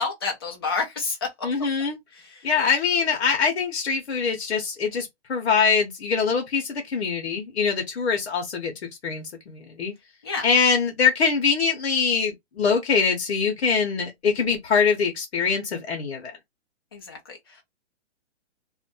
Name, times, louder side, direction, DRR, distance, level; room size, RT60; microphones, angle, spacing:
voice 1, 0.0-1.5 2.1-2.5 10.2-10.4 16.9-17.6, left 4 dB, 20° left, 0.6 m, -30 dB
voice 2, 1.4-2.0 2.4-9.9 10.4-16.3, left 5 dB, 65° left, 0.9 m, -23 dB
2.5 x 2.2 x 2.6 m
hypercardioid pair, 175°, 34 cm